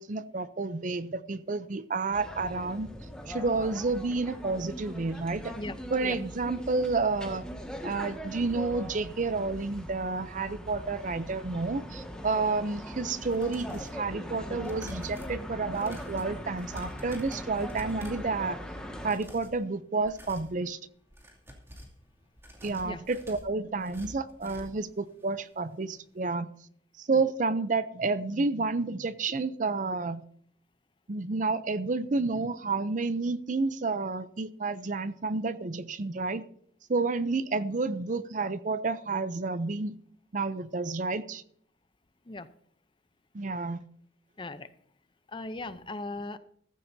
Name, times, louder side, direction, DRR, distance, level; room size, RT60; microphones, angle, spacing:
voice 1, 0.0-2.9 3.3-5.5 5.9-7.4 7.8-18.6 19.0-20.8 22.6-26.5 27.0-30.2 31.1-36.4 36.9-39.9 40.3-41.4 43.3-43.9, right 3 dB, 45° right, 14 dB, 0.6 m, -30 dB
sound 1, 2.1-19.1, equal, 5° left, 1.8 m, -41 dB
sound 2, 13.2-14.0 14.6-18.3 19.0-19.6 20.0-20.5 21.0-22.0 22.4-24.9 25.2-25.3 25.7-25.8, equal, 15° right, 2.5 m, -47 dB
voice 2, 44.4-44.7 45.3-46.4, left 2 dB, 25° left, 12 dB, 0.6 m, -38 dB
14.5 x 14.5 x 2.7 m, 0.64 s
head